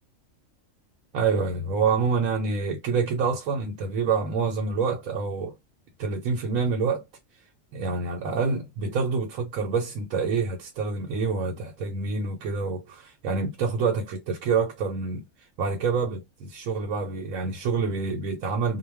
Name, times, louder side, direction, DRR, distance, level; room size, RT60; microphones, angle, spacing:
voice 1, 1.1-5.5 6.0-7.0 7.7-15.2 15.6-18.8, right 5 dB, 85° right, 1.0 m, -27 dB
2.3 x 2.1 x 3.3 m
omnidirectional pair, 1.4 m